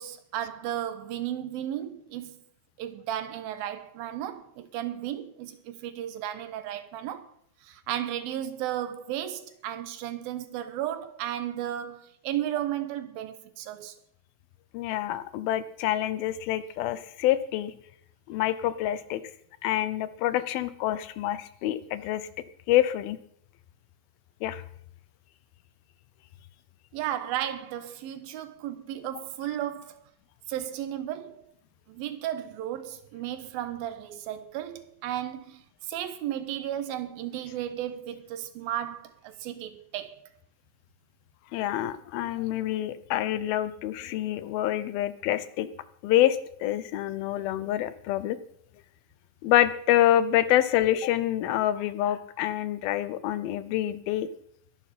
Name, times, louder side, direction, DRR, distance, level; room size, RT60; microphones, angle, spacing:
voice 1, 0.0-2.4 2.8-7.3 7.6-14.0 26.9-30.0 30.5-31.5 31.9-40.2, right 11 dB, 85° right, 2.9 m, -34 dB
voice 2, 14.7-17.7 18.3-19.2 19.6-22.3 22.7-23.2 24.4-24.6 41.5-45.7 46.0-48.4 49.4-54.3, left 13 dB, 85° left, 2.7 m, -26 dB
21.0 x 11.5 x 4.3 m
omnidirectional pair, 4.2 m